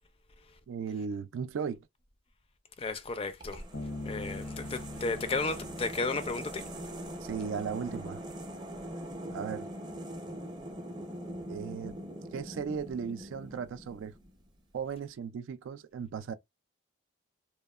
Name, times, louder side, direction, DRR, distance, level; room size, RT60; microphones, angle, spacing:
voice 1, 0.7-1.9 4.0-4.2 7.2-8.2 9.3-9.7 11.5-12.0 12.3-14.1 14.7-16.3, right 6 dB, 80° right, 0.3 m, -36 dB
voice 2, 2.8-3.6 4.1-6.6, left 3 dB, 30° left, 0.4 m, -33 dB
sound 1, 3.4-14.5, right 1 dB, 25° right, 0.5 m, -42 dB
Bass guitar, 3.7-7.3, left 2 dB, 70° left, 0.7 m, -43 dB
3.0 x 2.0 x 2.3 m
head